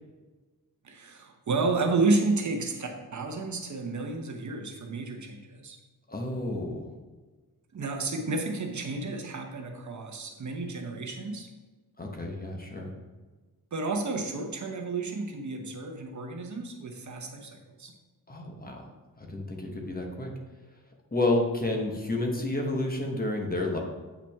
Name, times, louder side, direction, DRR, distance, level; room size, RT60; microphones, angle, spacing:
voice 1, 0.8-5.8 7.7-11.5 13.7-17.9, right 3 dB, 50° right, 3 dB, 0.9 m, -31 dB
voice 2, 6.1-6.9 12.0-12.9 18.3-18.8 19.3-20.3 21.1-23.8, left 2 dB, 25° left, 1 dB, 1.1 m, -30 dB
8.5 x 5.7 x 3.5 m, 1.3 s
wide cardioid pair, 150°, 39 cm